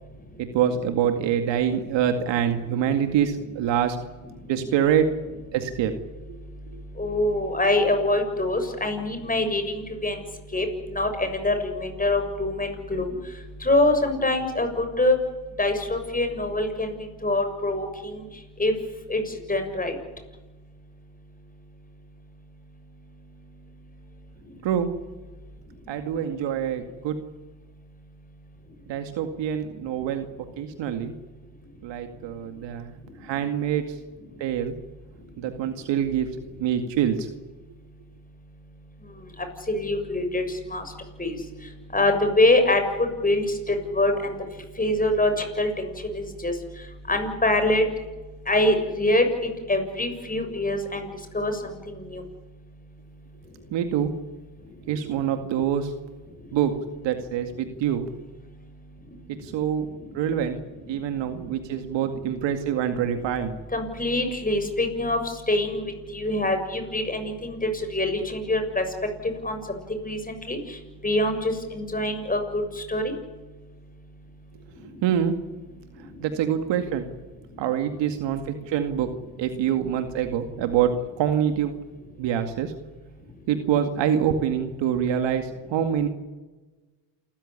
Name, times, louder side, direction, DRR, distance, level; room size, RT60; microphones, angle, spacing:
voice 1, 0.4-4.0 4.5-5.1 5.5-5.9 24.6-24.9 25.9-27.2 28.9-30.3 30.6-31.1 31.8-32.9 33.2-33.8 34.4-34.7 35.4-36.3 36.6-37.3 53.7-54.1 54.9-55.9 56.5-56.7 57.0-58.0 59.4-59.9 60.1-60.6 60.9-63.6 75.0-75.3 76.2-77.1 77.6-79.1 79.4-81.8 82.2-82.7 83.5-86.1, right 9 dB, 70° right, 7 dB, 2.2 m, -25 dB
voice 2, 7.0-10.2 10.5-13.1 13.6-15.2 15.6-16.9 17.2-17.9 18.1-18.2 18.6-18.7 19.1-19.2 19.5-20.0 39.7-40.4 40.7-40.8 41.2-41.4 41.9-42.8 43.2-44.4 44.8-46.5 47.1-47.8 48.5-49.2 49.7-51.1 51.3-52.2 63.7-65.2 65.5-65.8 66.1-68.8 69.4-69.6 70.0-70.6 71.0-72.6 72.9-73.1, left 2 dB, 20° left, 6 dB, 6.8 m, -24 dB
28.5 x 14.5 x 9.9 m, 1.2 s
supercardioid pair, 75°, 45 cm